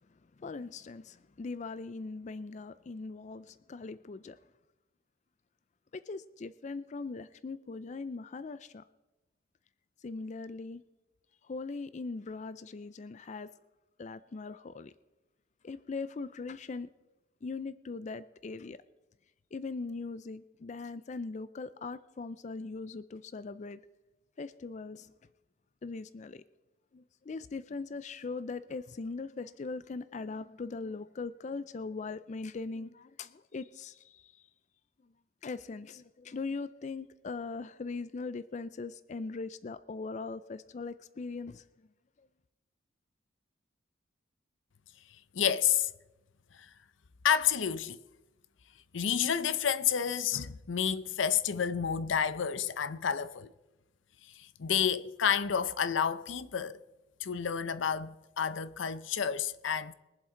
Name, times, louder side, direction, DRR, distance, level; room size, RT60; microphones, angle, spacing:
voice 1, 0.4-4.4 5.9-8.8 10.0-10.8 11.4-13.5 14.0-14.9 15.6-16.9 17.4-18.8 19.5-23.8 24.4-25.1 25.8-26.4 26.9-34.5 35.0-35.1 35.4-41.9 42.2-42.3, left 4 dB, 40° left, 0.4 m, -40 dB
voice 2, 45.3-45.9 46.6-46.7 47.2-48.0 48.9-53.5 54.4-56.8 57.2-59.9, left 8 dB, 80° left, 0.6 m, -30 dB
22.5 x 7.5 x 4.4 m
head